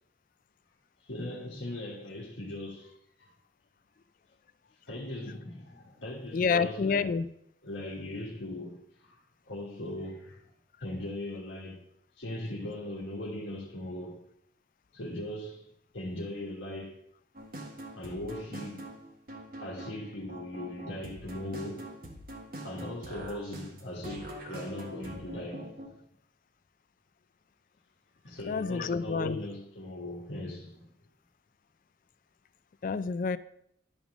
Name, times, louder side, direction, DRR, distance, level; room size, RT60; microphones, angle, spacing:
voice 1, 1.0-3.3 4.9-7.1 7.6-10.4 10.8-11.8 12.2-14.2 14.9-15.7 15.9-17.0 17.9-18.8 19.6-21.9 22.6-25.8 28.2-30.9, left 1 dB, 75° left, 1.5 m, -39 dB
voice 2, 6.3-7.3 28.4-29.4 32.8-33.4, left 5 dB, 45° left, 0.3 m, -28 dB
sound 1, 17.3-25.9, right 1 dB, 50° right, 1.4 m, -44 dB
10.5 x 3.6 x 6.1 m
head